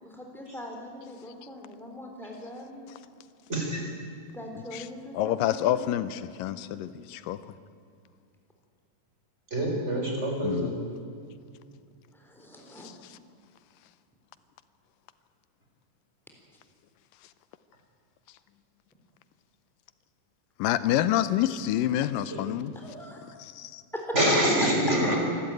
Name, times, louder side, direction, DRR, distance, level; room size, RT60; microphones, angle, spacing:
voice 1, 0.0-2.9 4.3-5.9 6.4-6.7 12.2-12.9 22.8-23.3, left 1 dB, ahead, 1 dB, 3.3 m, -43 dB
voice 2, 3.5-3.9 9.5-10.7 22.3-22.4 24.1-25.2, equal, 20° right, 0 dB, 4.4 m, -25 dB
voice 3, 5.1-7.4 10.4-10.7 12.8-13.2 20.6-22.8 23.4-23.8, left 12 dB, 85° left, 13 dB, 2.3 m, -28 dB
27.0 x 12.5 x 9.2 m, 2.3 s
omnidirectional pair, 3.9 m